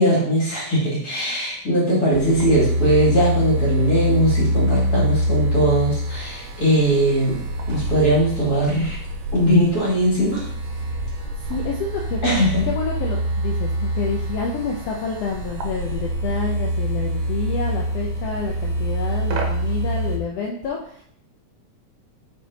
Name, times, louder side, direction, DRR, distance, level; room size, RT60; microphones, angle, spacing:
voice 1, 0.0-7.4 7.7-9.0 9.3-10.5 12.2-12.6, right 1 dB, 35° left, -5 dB, 2.5 m, -20 dB
sound 1, 2.1-20.2, equal, 70° right, 2.0 m, -25 dB
voice 2, 11.3-21.0, left 5 dB, 75° left, 0 dB, 1.5 m, -29 dB
5.4 x 5.2 x 3.9 m, 0.64 s
omnidirectional pair, 3.5 m